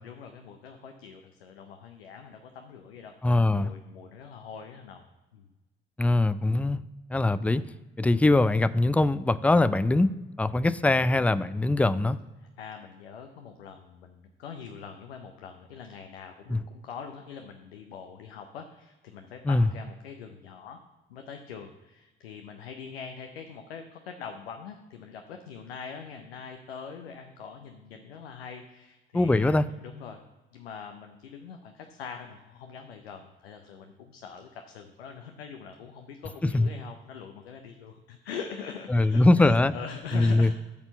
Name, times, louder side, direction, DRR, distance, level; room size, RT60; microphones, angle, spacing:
voice 1, 0.0-5.0 5.3-5.5 6.7-6.8 12.4-20.8 21.1-30.2 30.5-40.5, left 6 dB, 80° left, 5 dB, 0.7 m, -43 dB
voice 2, 3.2-3.7 6.0-6.8 7.1-7.6 8.0-10.1 10.4-12.2 16.5-16.6 19.4-19.7 29.1-29.7 36.5-36.7 38.9-39.7 40.1-40.5, left 2 dB, 5° left, 15 dB, 0.4 m, -22 dB
8.4 x 4.3 x 6.9 m, 1.1 s
figure-of-eight pair, 45°, 30 cm